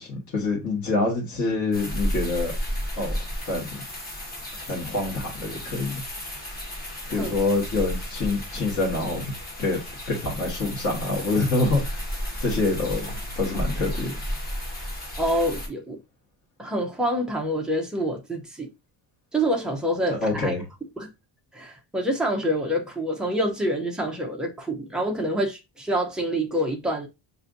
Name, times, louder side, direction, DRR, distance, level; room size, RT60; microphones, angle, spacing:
voice 1, 0.0-2.5 2.9-3.2 3.4-3.8 4.7-6.0 7.1-9.3 9.6-9.8 10.1-11.8 12.4-14.1 20.1-20.6, left 3 dB, 40° left, 1.5 m, -26 dB
sound 1, 1.7-15.7, equal, 20° left, 1.2 m, -33 dB
voice 2, 15.2-16.0 16.6-18.7 19.3-20.5 21.0-21.1 21.5-27.1, equal, ahead, 0.4 m, -26 dB
5.5 x 2.6 x 2.5 m
cardioid pair, 180°, 48 cm